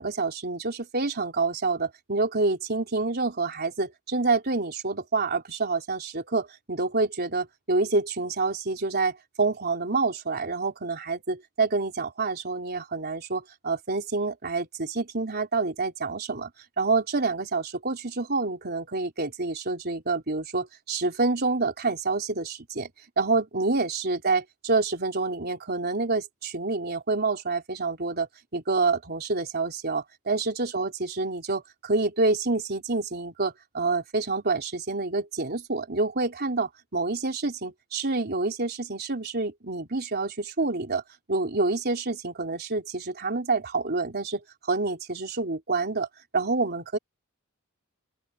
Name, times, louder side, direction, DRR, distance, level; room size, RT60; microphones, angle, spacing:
voice 1, 0.0-16.5 16.8-22.9 23.2-41.0 41.3-44.4 44.7-46.1 46.3-47.0, right 3 dB, 50° right, 3.9 m, -27 dB
open air
head